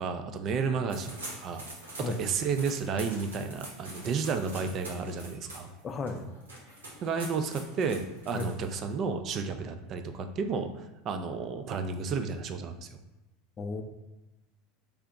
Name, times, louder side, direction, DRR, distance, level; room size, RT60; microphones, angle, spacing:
voice 1, 0.0-1.7 2.0-5.7 7.0-10.7 11.0-13.0, right 5 dB, 45° right, 7 dB, 0.4 m, -32 dB
sound 1, 0.9-8.9, right 2 dB, 90° right, 0.9 m, -45 dB
voice 2, 5.8-6.3 8.3-8.5 13.6-13.8, left 4 dB, 30° left, 6 dB, 0.5 m, -34 dB
3.4 x 2.8 x 3.5 m, 1.0 s
hypercardioid pair, 80°, 0 cm